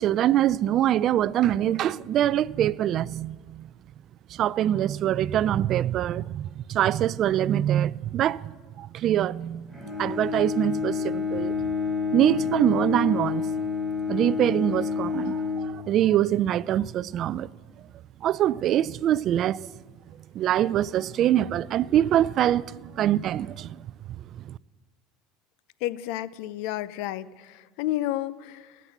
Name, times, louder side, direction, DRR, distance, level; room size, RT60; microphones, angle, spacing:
voice 1, 0.0-3.6 4.3-8.5 8.8-9.7 10.0-11.6 12.1-13.4 14.1-17.5 18.2-19.7 20.3-23.8 24.5-24.6, right 11 dB, 45° right, 0.3 m, -24 dB
Bowed string instrument, 9.7-16.4, left 5 dB, 10° left, 4.6 m, -29 dB
voice 2, 25.8-28.8, left 14 dB, 70° left, 0.5 m, -31 dB
17.5 x 7.4 x 7.9 m
supercardioid pair, 120°, 0 cm